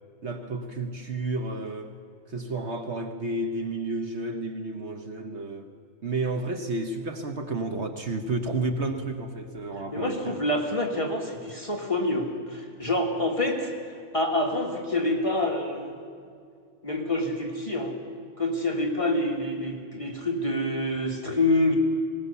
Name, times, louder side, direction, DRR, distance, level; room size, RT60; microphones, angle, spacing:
voice 1, 0.2-1.9 2.3-5.7 6.0-10.4, right 2 dB, 55° right, 5 dB, 1.4 m, -31 dB
voice 2, 9.9-13.7 14.1-15.9 16.8-18.0 18.4-21.8, left 1 dB, 25° left, 0 dB, 1.9 m, -27 dB
20.0 x 19.5 x 6.9 m, 2.3 s
omnidirectional pair, 1.4 m